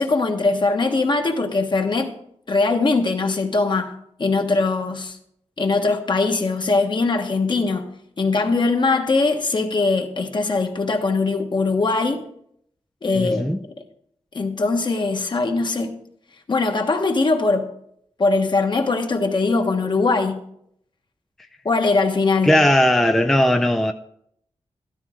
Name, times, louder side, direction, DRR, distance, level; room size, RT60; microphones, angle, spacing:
voice 1, 0.0-2.1 2.5-3.9 4.2-5.2 5.6-7.8 8.2-12.2 13.0-13.6 14.3-15.9 16.5-17.7 18.2-20.4 21.6-22.5, left 3 dB, 45° left, 1.3 m, -21 dB
voice 2, 13.1-13.6 22.4-23.9, left 1 dB, 5° left, 0.4 m, -18 dB
13.5 x 12.5 x 3.6 m
wide cardioid pair, 160°, 11 cm